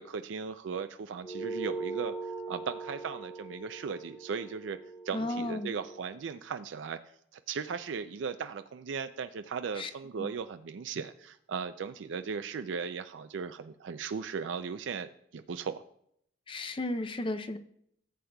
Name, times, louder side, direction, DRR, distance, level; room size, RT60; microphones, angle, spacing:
voice 1, 0.0-2.1 2.5-4.8 5.0-7.0 7.3-15.8, right 6 dB, 90° right, 9 dB, 0.4 m, -37 dB
sound 1, 1.2-6.0, right 3 dB, 50° left, 2.0 m, -40 dB
voice 2, 5.1-5.7 9.8-9.9 10.2-10.3 16.5-17.6, left 2 dB, 30° left, 9 dB, 0.5 m, -34 dB
15.0 x 7.9 x 2.3 m, 0.70 s
head